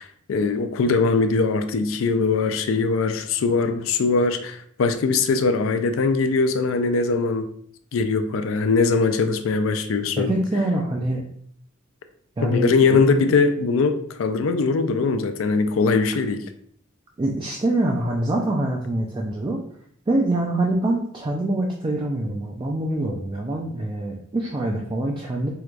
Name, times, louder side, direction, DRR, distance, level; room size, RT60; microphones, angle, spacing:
voice 1, 0.0-7.5 7.9-10.3 12.4-16.4, left 4 dB, 65° left, 9 dB, 0.4 m, -21 dB
voice 2, 10.2-11.2 12.4-13.0 17.2-19.6 20.1-25.5, right 1 dB, 20° right, 0 dB, 0.3 m, -25 dB
4.5 x 2.2 x 2.4 m, 0.63 s
head